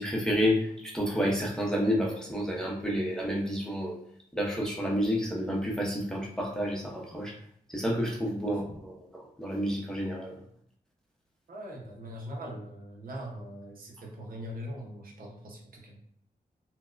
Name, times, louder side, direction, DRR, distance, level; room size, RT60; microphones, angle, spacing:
voice 1, 0.0-4.0 4.3-7.3 7.7-10.4, equal, 5° left, -3 dB, 0.7 m, -30 dB
voice 2, 11.5-16.0, equal, 70° right, -1 dB, 0.8 m, -41 dB
4.3 x 2.1 x 2.4 m, 0.66 s
wide cardioid pair, 100°, 15 cm